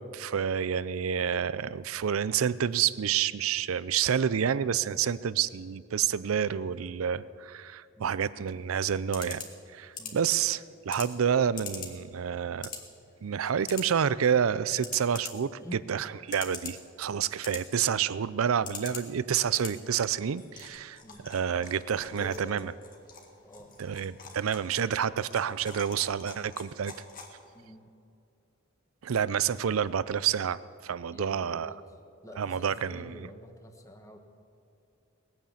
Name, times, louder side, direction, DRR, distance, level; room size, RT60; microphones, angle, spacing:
voice 1, 0.0-9.4 9.7-12.7 13.2-15.6 15.9-22.7 23.8-26.9 29.0-31.7 32.4-33.3, right 8 dB, 85° right, 17 dB, 0.5 m, -29 dB
sound 1, 8.3-27.7, left 5 dB, 45° left, 1.9 m, -46 dB
voice 2, 22.1-22.7 23.4-23.8 27.5-27.9 31.1-31.8 32.2-34.2, equal, 15° left, 4 dB, 1.2 m, -47 dB
19.5 x 9.3 x 7.2 m, 2.5 s
head